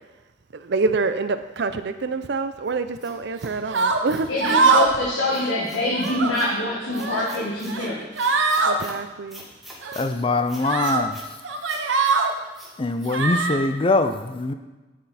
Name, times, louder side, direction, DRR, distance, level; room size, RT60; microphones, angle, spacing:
voice 1, 0.5-4.3 8.7-9.5, right 3 dB, 65° right, 11 dB, 0.5 m, -26 dB
sound 1, 2.7-4.6 5.3-6.5 6.9-7.8 8.2-9.0 9.3-10.1 10.5-11.3 11.7-12.2 12.5-12.7 13.0-13.1, equal, ahead, 1.7 m, -44 dB
sound 2, 3.7-4.0 4.4-5.0 5.3-5.5 5.9-6.3 6.8-7.3 7.7-7.9 8.2-8.7 9.8-10.0 10.6-11.0 11.4-12.3 13.1-13.6, right 4 dB, 80° right, 0.9 m, -22 dB
voice 2, 4.3-8.0, left 2 dB, 80° left, -4 dB, 1.6 m, -25 dB
voice 3, 10.0-11.2 12.8-14.5, left 2 dB, 30° left, 9 dB, 0.5 m, -23 dB
9.2 x 7.4 x 4.2 m, 1.1 s
head